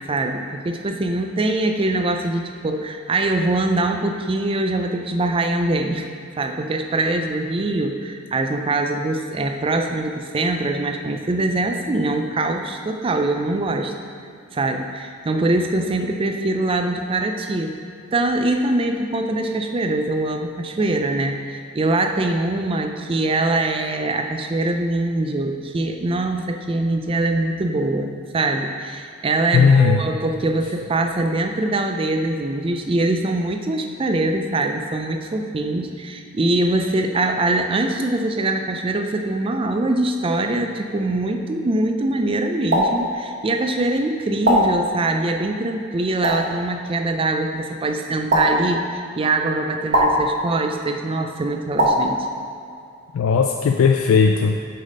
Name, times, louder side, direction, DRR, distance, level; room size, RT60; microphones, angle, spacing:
voice 1, 0.1-6.1 6.4-13.9 14.5-17.8 18.1-52.3, right 2 dB, 25° right, 5 dB, 0.4 m, -23 dB
voice 2, 29.5-30.0 53.1-54.6, left 5 dB, 75° left, 4 dB, 0.3 m, -16 dB
sound 1, 42.7-42.9 44.4-44.6 46.2-46.4 48.3-48.4 49.9-50.1 51.8-51.9, right 1 dB, 50° right, 1.1 m, -17 dB
6.4 x 4.0 x 5.2 m, 2.4 s
head